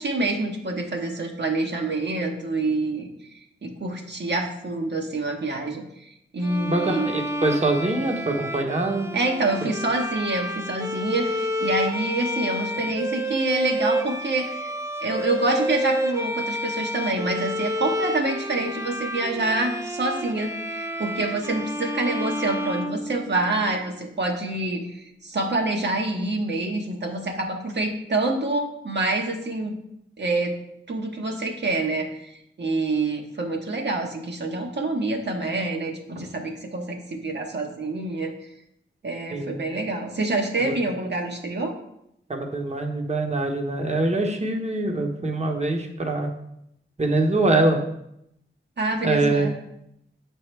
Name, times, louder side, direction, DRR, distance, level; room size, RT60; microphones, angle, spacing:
voice 1, 0.0-3.1 3.6-7.1 9.1-14.7 15.0-29.7 30.2-30.5 30.9-38.3 39.0-41.7 48.8-49.5, right 2 dB, 60° right, 1 dB, 1.1 m, -27 dB
Bowed string instrument, 6.4-23.6, equal, 15° right, 0.7 m, -29 dB
voice 2, 6.7-9.1 39.3-39.6 40.6-40.7 42.3-46.3 47.0-47.8 49.0-49.5, right 2 dB, 35° right, 2 dB, 1.1 m, -24 dB
7.0 x 4.6 x 3.3 m, 0.78 s
cardioid pair, 45°, 21 cm